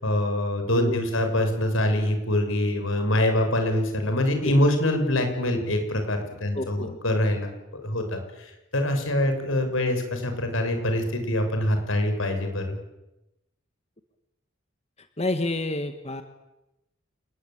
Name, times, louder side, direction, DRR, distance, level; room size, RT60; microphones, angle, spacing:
voice 1, 0.0-12.8, left 1 dB, 90° left, 6 dB, 6.5 m, -25 dB
voice 2, 6.5-7.0 15.2-16.2, left 2 dB, 30° left, 8 dB, 1.7 m, -29 dB
28.5 x 20.5 x 9.0 m, 0.94 s
head